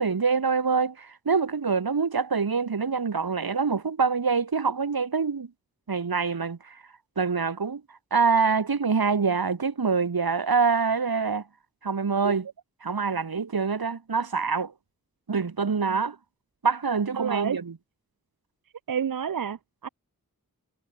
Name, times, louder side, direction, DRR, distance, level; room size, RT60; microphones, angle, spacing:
voice 1, 0.0-5.5 5.9-6.8 7.2-7.8 8.1-11.4 11.8-12.5 12.8-14.7 15.3-16.1 16.6-17.8, right 5 dB, 85° right, 1.3 m, -25 dB
voice 2, 17.2-17.6 18.9-19.9, right 7 dB, 70° right, 0.6 m, -29 dB
wide cardioid pair, 45°, 36 cm